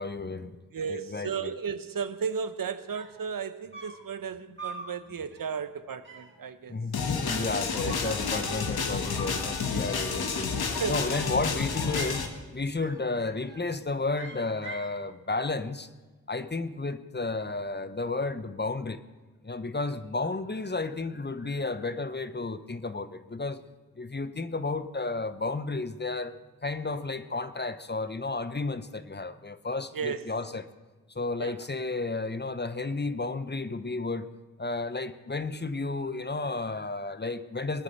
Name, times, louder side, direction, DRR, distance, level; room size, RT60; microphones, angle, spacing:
voice 1, 0.0-0.6 0.9-1.6 6.7-15.9 16.3-19.0 19.4-23.6 23.9-30.7 31.1-34.3 34.6-37.8, left 3 dB, 30° left, 1.0 m, -32 dB
voice 2, 0.7-6.8 7.8-8.1 10.8-11.0 29.9-30.2 31.4-31.6, right 6 dB, 65° right, 0.9 m, -34 dB
sound 1, 2.9-3.3 3.7-4.1 4.6-4.9 5.3-5.6 6.0-6.4 7.2-8.1 8.3-9.0 10.2-10.9 11.3-12.3 12.8-13.1 13.4-13.8 14.1-15.0, right 4 dB, 35° right, 3.1 m, -45 dB
sound 2, 6.9-12.3, left 5 dB, 80° left, 1.5 m, -30 dB
20.0 x 9.2 x 6.8 m
cardioid pair, 40°, 36 cm